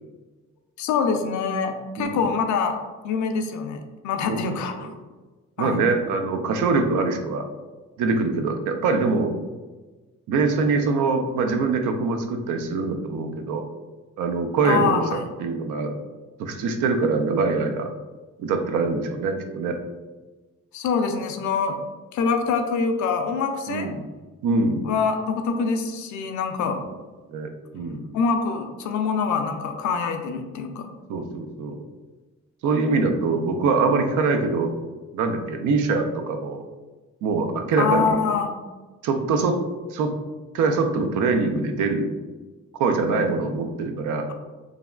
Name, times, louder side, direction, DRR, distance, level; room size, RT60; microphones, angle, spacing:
voice 1, 0.8-2.8 3.0-4.9 5.6-5.8 14.6-15.2 20.7-21.8 22.1-23.9 24.8-26.8 28.1-30.9 37.8-38.5, left 5 dB, 70° left, 5 dB, 0.5 m, -25 dB
voice 2, 4.3-4.9 5.6-7.5 8.0-9.3 10.3-13.6 14.2-15.9 16.4-17.9 18.4-19.8 23.7-24.1 24.4-24.9 27.3-28.1 31.1-31.8 32.6-34.7 35.1-36.6 37.2-38.2 39.0-39.6 39.9-40.1 40.5-42.1 42.8-44.3, right 4 dB, 80° right, 5 dB, 0.5 m, -23 dB
3.3 x 2.4 x 2.2 m, 1.2 s
cardioid pair, 90°, 30 cm